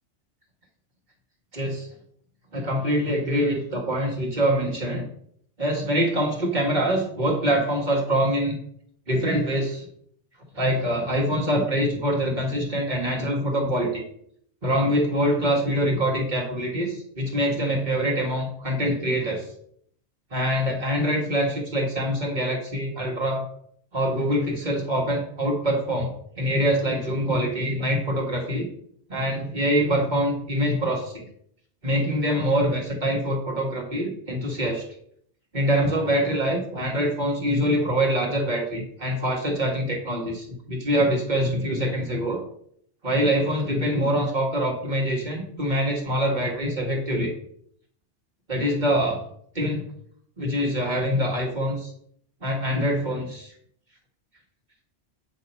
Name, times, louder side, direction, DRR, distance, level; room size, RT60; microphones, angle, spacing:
voice 1, 1.5-1.9 2.5-5.1 5.6-8.6 9.1-9.9 10.5-14.0 14.6-19.5 20.3-23.4 23.9-26.1 26.4-28.7 29.1-31.2 31.8-34.8 35.5-42.4 43.0-47.3 48.5-49.2 49.5-49.9 50.4-51.9 52.4-53.5, equal, 35° right, -2 dB, 1.7 m, -24 dB
8.6 x 2.9 x 5.4 m, 0.66 s
omnidirectional pair, 1.3 m